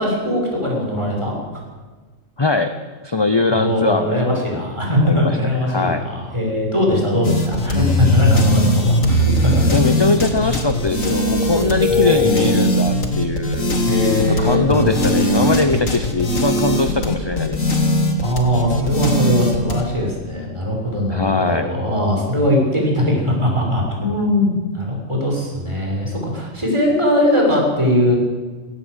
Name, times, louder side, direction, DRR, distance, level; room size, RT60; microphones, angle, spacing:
voice 1, 0.0-1.6 3.5-9.7 11.9-12.5 13.9-15.5 18.2-28.2, left 1 dB, 20° right, -1 dB, 6.5 m, -20 dB
voice 2, 2.4-2.7 3.0-4.6 5.0-6.0 9.7-13.8 14.2-17.7 21.1-21.7, left 3 dB, 25° left, 8 dB, 0.8 m, -21 dB
sound 1, 7.2-19.8, left 1 dB, 85° left, 2.9 m, -19 dB
18.5 x 18.0 x 8.2 m, 1.4 s
omnidirectional pair, 1.4 m